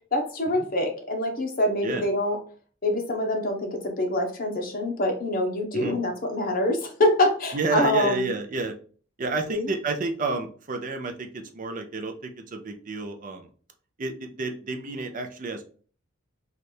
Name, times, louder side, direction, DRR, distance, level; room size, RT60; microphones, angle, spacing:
voice 1, 0.1-2.4 2.8-8.3 9.5-9.7, left 1 dB, 45° left, 2 dB, 0.9 m, -25 dB
voice 2, 7.5-8.7 9.2-13.5 14.0-15.6, right 3 dB, 40° right, 5 dB, 0.5 m, -30 dB
3.2 x 2.5 x 4.2 m, 0.42 s
head